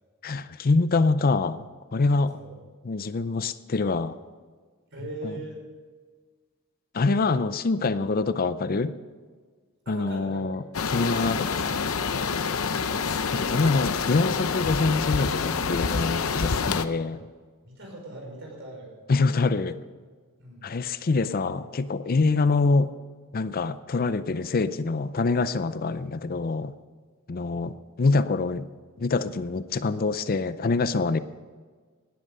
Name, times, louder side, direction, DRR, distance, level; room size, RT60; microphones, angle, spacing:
voice 1, 0.2-1.6 1.9-2.4 2.8-4.2 5.2-5.4 6.9-8.9 9.9-10.6 10.9-11.8 13.3-17.3 19.1-19.8 20.6-22.9 23.3-26.7 27.3-28.7 29.0-31.2, left 3 dB, 45° left, 14 dB, 0.5 m, -25 dB
voice 2, 4.9-5.6 9.9-10.5 12.6-12.9 16.3-16.5 17.6-18.9 20.4-20.7 27.5-27.7, right 2 dB, 60° right, 0 dB, 5.4 m, -40 dB
sound 1, 10.7-16.9, left 5 dB, 85° left, 0.7 m, -27 dB
18.0 x 11.0 x 5.5 m, 1.5 s
head